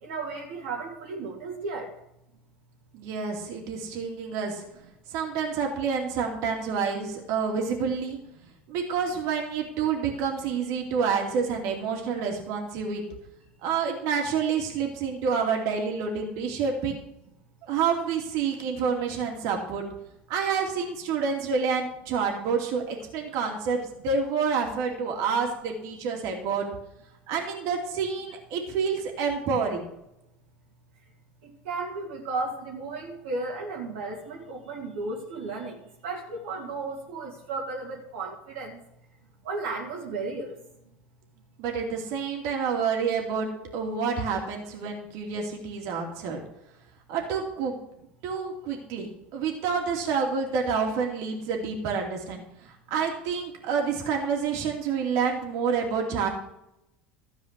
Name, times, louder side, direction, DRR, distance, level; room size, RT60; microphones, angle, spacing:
voice 1, 0.0-1.9 31.4-35.8 36.0-38.8 39.4-40.5, right 3 dB, 75° right, -2 dB, 2.5 m, -34 dB
voice 2, 2.9-4.6 5.1-8.2 8.7-13.0 13.6-17.0 17.6-19.9 20.3-26.7 27.3-29.8 41.6-46.4 47.1-47.7 48.2-56.3, right 6 dB, 60° right, 1 dB, 2.7 m, -28 dB
13.5 x 4.8 x 8.4 m, 0.82 s
hypercardioid pair, 85°, 6 cm